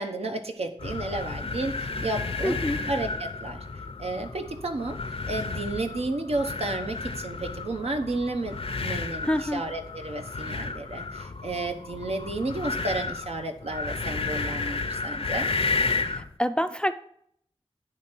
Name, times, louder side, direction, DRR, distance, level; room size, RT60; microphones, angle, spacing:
voice 1, 0.0-2.6 2.9-3.6 4.0-15.5, right 2 dB, 75° right, 5 dB, 0.8 m, -32 dB
sound 1, 0.8-16.3, left 4 dB, 65° left, 0.6 m, -32 dB
voice 2, 2.4-2.8 9.2-9.6 16.1-17.0, equal, 10° left, 10 dB, 0.4 m, -27 dB
9.4 x 3.2 x 6.0 m, 0.69 s
wide cardioid pair, 75°, 10 cm